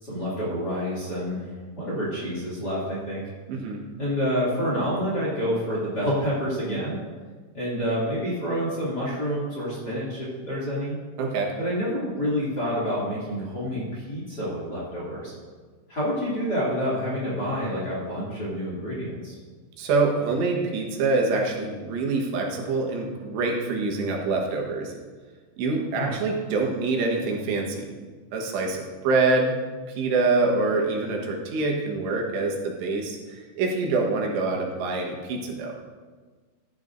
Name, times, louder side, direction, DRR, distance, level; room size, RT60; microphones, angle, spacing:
voice 1, 0.0-1.5 1.8-3.2 4.0-7.0 7.5-11.0 11.6-15.3 15.9-19.4 26.0-26.1, equal, 30° left, -6 dB, 2.5 m, -28 dB
voice 2, 3.5-3.8 11.2-11.5 19.8-24.9 25.6-28.0 28.3-29.6 30.0-35.7, right 3 dB, 80° right, 0 dB, 3.5 m, -25 dB
14.5 x 11.5 x 2.6 m, 1.4 s
omnidirectional pair, 4.8 m